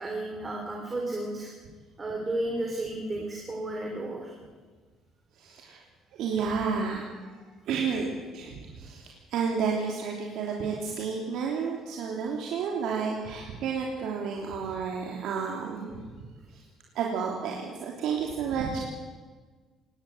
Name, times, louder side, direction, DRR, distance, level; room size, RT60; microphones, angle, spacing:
voice 1, 0.0-1.5 2.0-4.3, right 1 dB, 20° right, 0 dB, 3.2 m, -33 dB
voice 2, 5.4-5.8 6.1-7.3 7.7-8.1 8.3-16.0 16.5-16.6 16.9-18.8, right 6 dB, 65° right, -1 dB, 3.1 m, -31 dB
20.5 x 17.5 x 7.9 m, 1.4 s
cardioid pair, 160°, 0 cm